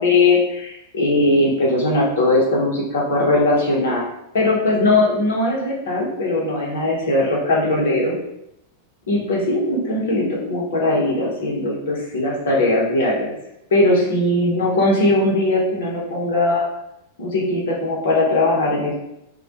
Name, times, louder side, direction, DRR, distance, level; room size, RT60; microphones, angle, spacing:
voice 1, 0.0-4.0 4.3-8.2 9.1-13.3 13.7-16.7 17.2-19.0, left 2 dB, 60° left, -4 dB, 0.7 m, -19 dB
2.1 x 2.1 x 2.7 m, 0.82 s
figure-of-eight pair, 90°, 0 cm